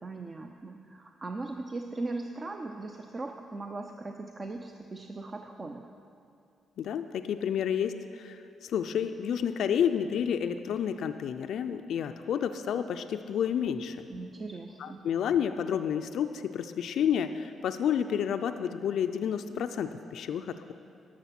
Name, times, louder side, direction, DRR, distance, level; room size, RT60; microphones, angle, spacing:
voice 1, 0.0-5.9 14.1-15.1, right 2 dB, 35° right, 4 dB, 0.6 m, -39 dB
voice 2, 6.8-14.0 14.8-20.7, left 8 dB, 75° left, 8 dB, 0.4 m, -30 dB
12.0 x 6.8 x 5.8 m, 2.5 s
supercardioid pair, 65°, 0 cm